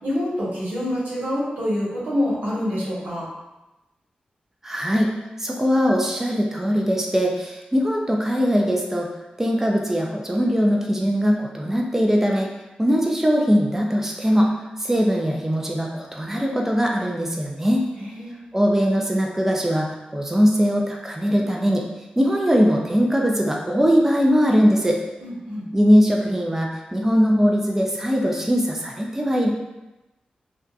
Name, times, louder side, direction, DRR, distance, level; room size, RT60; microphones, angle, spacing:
voice 1, 0.0-3.3 18.0-18.4 25.2-25.7, left 1 dB, 90° right, -8 dB, 0.9 m, -26 dB
voice 2, 4.6-5.1 5.4-9.1 9.4-12.5 12.8-14.5 14.8-17.9 18.5-21.8 22.2-25.0 25.7-29.5, equal, 15° right, 0 dB, 0.4 m, -20 dB
2.6 x 2.2 x 2.4 m, 1.0 s
cardioid pair, 55°, 3 cm